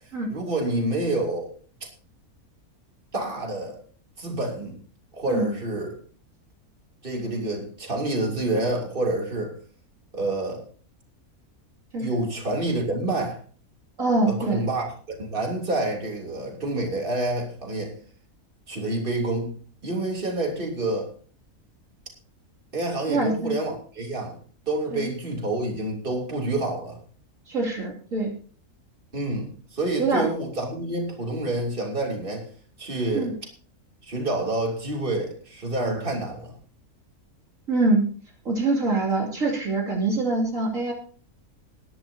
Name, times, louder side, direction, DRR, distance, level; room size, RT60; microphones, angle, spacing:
voice 1, 0.0-1.5 3.1-3.8 4.2-4.8 5.1-6.0 7.0-9.5 10.1-10.6 12.0-13.4 14.3-17.9 18.7-19.5 19.8-21.1 22.7-24.4 24.7-27.0 29.1-32.4 32.8-33.3 34.0-36.5, right 2 dB, 35° right, 1 dB, 3.3 m, -28 dB
voice 2, 14.0-14.6 23.1-23.5 24.9-25.0 27.5-28.3 30.0-30.3 33.1-33.3 37.7-38.0 38.4-40.9, right 2 dB, 60° right, -1 dB, 3.1 m, -24 dB
21.0 x 11.0 x 2.8 m, 0.42 s
omnidirectional pair, 1.6 m